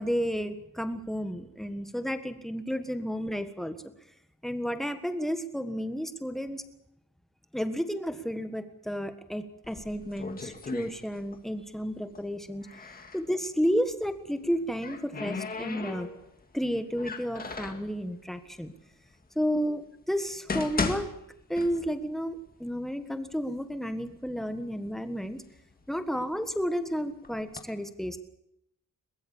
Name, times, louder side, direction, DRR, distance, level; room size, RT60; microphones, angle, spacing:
voice 1, 0.0-3.8 4.4-6.6 7.5-12.9 13.1-16.1 16.5-18.7 19.3-21.1 21.5-25.4 25.9-28.2, equal, ahead, 8 dB, 1.6 m, -32 dB
sound 1, 9.6-11.5 11.8-13.2 14.4-16.4 17.0-17.9 18.7-18.8 19.4-19.5 20.2-22.1 22.5-22.6 23.3-23.4 23.7-24.4 24.9-26.6 27.2-27.6, left 4 dB, 30° left, 2.1 m, -36 dB
22.5 x 21.0 x 7.1 m, 0.79 s
wide cardioid pair, 175°, 32 cm